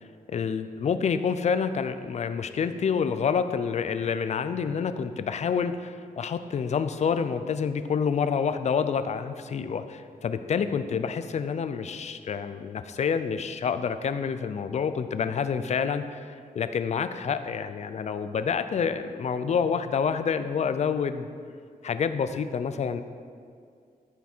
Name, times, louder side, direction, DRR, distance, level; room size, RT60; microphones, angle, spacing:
voice 1, 0.3-16.3 16.5-21.3 21.8-23.0, left 6 dB, 50° left, 11 dB, 0.5 m, -28 dB
13.5 x 5.9 x 4.4 m, 2.2 s
wide cardioid pair, 150°, 15 cm